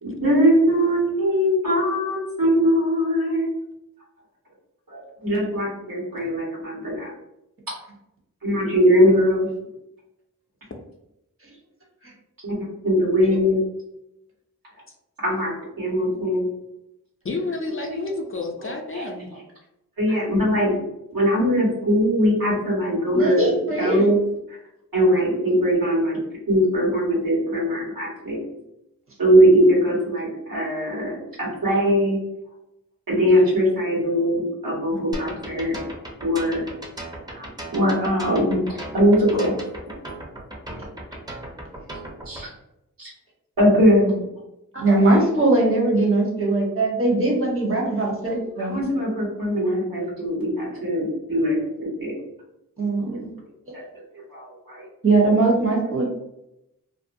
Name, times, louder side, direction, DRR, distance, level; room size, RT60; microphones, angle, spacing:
voice 1, 0.0-3.5 4.9-7.1 8.4-9.5 12.4-12.5 12.8-13.6 15.2-16.5 17.7-18.0 18.6-19.4 20.0-20.8 21.1-23.5 23.8-24.2 24.5-24.6 24.9-26.2 26.5-28.4 29.2-32.2 33.1-35.7 36.2-36.6 37.3-38.6 38.9-39.6 42.2-42.5 43.0-43.1 43.6-44.2 45.3-45.4 48.6-52.1 53.1-53.2 53.7-53.8 54.3-54.9 55.6-55.7, equal, 75° right, -6 dB, 1.4 m, -21 dB
voice 2, 17.2-19.3 34.9-35.3, left 3 dB, 40° left, 2 dB, 0.4 m, -31 dB
voice 3, 23.1-24.1 44.7-48.8 52.8-53.3 55.0-56.1, right 2 dB, 40° right, -2 dB, 1.0 m, -20 dB
sound 1, 35.1-42.4, right 1 dB, 10° right, 0.6 m, -36 dB
2.5 x 2.2 x 2.6 m, 0.85 s
wide cardioid pair, 45°, 35 cm